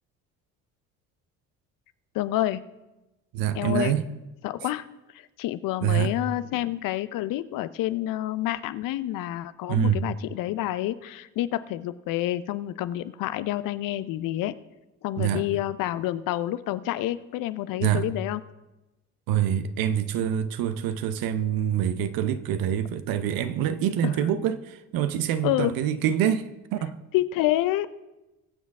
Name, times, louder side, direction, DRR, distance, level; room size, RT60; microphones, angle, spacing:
voice 1, 2.1-2.6 3.5-4.0 4.4-4.8 5.1-14.5 15.0-18.4 25.4-25.7 27.1-27.9, left 14 dB, 60° left, 0.7 m, -28 dB
voice 2, 3.3-4.0 5.8-6.1 9.7-10.0 15.2-15.4 17.8-18.1 19.3-27.0, right 10 dB, 65° right, 0.9 m, -25 dB
21.0 x 7.3 x 3.6 m
hypercardioid pair, 60°, 37 cm